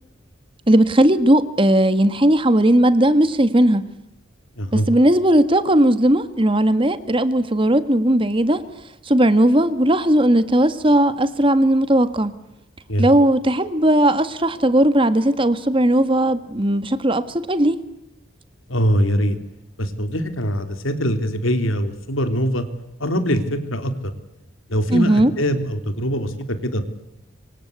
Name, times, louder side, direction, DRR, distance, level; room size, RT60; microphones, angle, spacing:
voice 1, 0.7-3.8 4.7-8.6 9.0-12.3 13.0-17.7 24.9-25.3, right 1 dB, 25° right, 12 dB, 1.7 m, -17 dB
voice 2, 18.7-19.4 19.8-22.7 23.0-23.9 24.7-26.9, equal, 80° left, 9 dB, 3.5 m, -22 dB
26.0 x 25.5 x 8.3 m, 0.85 s
head